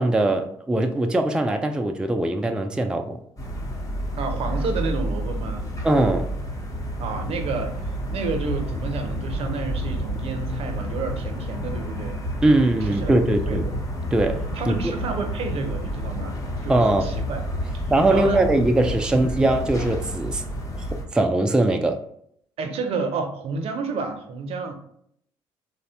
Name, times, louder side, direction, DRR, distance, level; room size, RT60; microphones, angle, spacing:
voice 1, 0.0-3.2 5.8-6.3 12.4-13.7 14.1-14.9 16.7-17.1 17.9-20.4 21.1-22.0, right 2 dB, 5° right, 5 dB, 0.3 m, -21 dB
sound 1, 3.4-21.0, equal, 30° left, 0.8 m, -30 dB
voice 2, 4.2-5.7 7.0-12.1 12.9-13.7 14.5-16.4 16.6-17.4 17.7-17.8 18.1-18.4 19.1-19.5 22.6-24.8, right 4 dB, 60° right, 5 dB, 0.6 m, -30 dB
3.1 x 2.0 x 2.8 m, 0.67 s
supercardioid pair, 65°, 11 cm